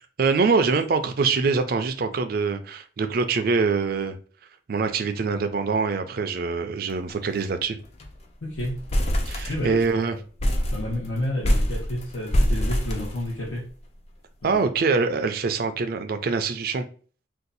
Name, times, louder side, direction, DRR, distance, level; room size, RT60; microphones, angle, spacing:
voice 1, 0.2-4.2 4.7-7.8 9.3-10.2 14.4-16.8, right 4 dB, 50° right, 0.4 m, -24 dB
sound 1, 6.9-7.1 7.4-7.5 7.8-8.2 8.5-9.9 10.4-13.7, equal, 35° left, 0.4 m, -25 dB
voice 2, 8.4-8.8 9.3-10.2 10.7-13.7 14.4-14.7, left 1 dB, 85° left, 0.9 m, -31 dB
2.6 x 2.3 x 3.9 m
head